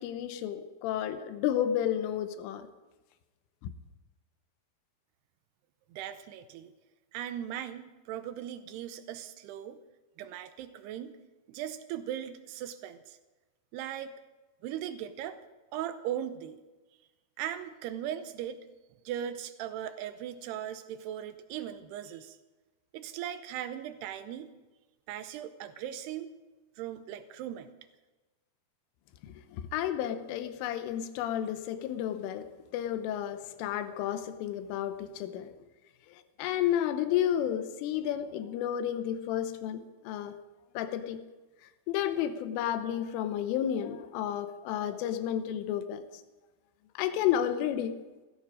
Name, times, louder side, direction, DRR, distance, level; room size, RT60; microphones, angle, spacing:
voice 1, 0.0-2.7 29.2-35.5 36.1-40.4 40.8-41.2 41.9-46.0 47.0-48.0, left 10 dB, 90° left, 9 dB, 3.4 m, -32 dB
voice 2, 5.9-6.7 7.1-9.8 10.2-11.2 11.5-13.2 13.7-14.1 14.6-15.4 15.7-16.6 17.4-18.6 19.1-22.4 22.9-24.5 25.1-26.3 26.8-27.7, right 10 dB, 80° right, 10 dB, 2.4 m, -38 dB
17.0 x 14.0 x 5.1 m, 1.2 s
omnidirectional pair, 5.6 m